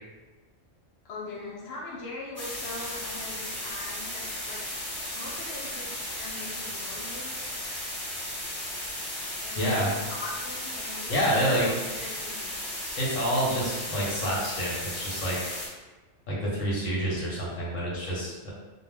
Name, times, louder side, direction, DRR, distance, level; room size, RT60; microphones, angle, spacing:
voice 1, 1.0-4.6 5.1-5.9 6.2-7.5 9.4-12.6, left 2 dB, 60° left, -6 dB, 0.9 m, -41 dB
sound 1, 2.4-15.7, left 1 dB, 15° left, 1.0 m, -35 dB
voice 2, 9.6-9.9 11.1-11.7 13.0-15.4 16.3-18.5, equal, 80° left, -5 dB, 1.2 m, -28 dB
2.5 x 2.1 x 3.3 m, 1.2 s
omnidirectional pair, 1.3 m